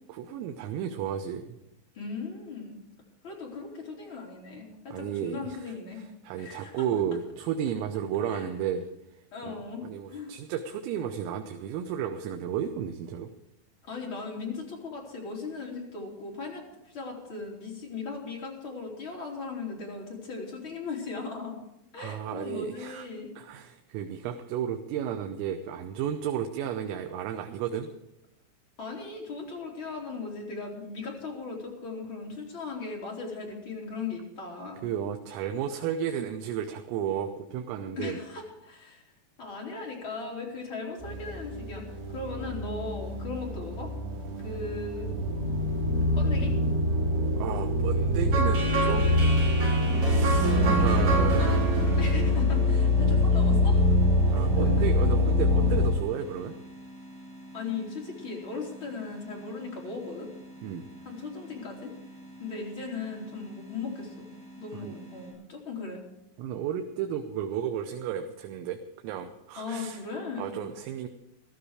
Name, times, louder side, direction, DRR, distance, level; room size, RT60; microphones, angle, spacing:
voice 1, 0.1-1.5 4.9-5.6 5.9-8.8 9.5-13.3 22.0-23.1 23.4-27.9 34.8-38.2 47.4-49.4 50.0-51.6 54.3-56.5 60.6-60.9 64.7-65.0 66.4-70.0 70.4-71.1, right 9 dB, 90° right, 5 dB, 3.5 m, -33 dB
voice 2, 1.9-2.8 3.2-6.0 6.3-6.8 8.3-8.5 9.3-9.8 10.1-10.3 13.8-21.6 21.9-23.3 28.8-34.8 37.9-39.0 39.4-43.9 44.4-45.1 46.2-46.5 50.4-51.2 52.0-53.9 54.2-54.8 57.5-60.3 61.0-61.9 62.4-64.3 64.6-66.0 69.5-70.5, left 4 dB, 30° left, -2 dB, 3.4 m, -38 dB
sound 1, 41.0-55.9, left 1 dB, 70° right, 5.8 m, -25 dB
sound 2, 48.3-53.3, right 3 dB, 45° right, 7.6 m, -30 dB
sound 3, 49.8-65.3, right 1 dB, 10° left, 6.3 m, -45 dB
15.5 x 13.5 x 4.9 m, 0.89 s
omnidirectional pair, 5.7 m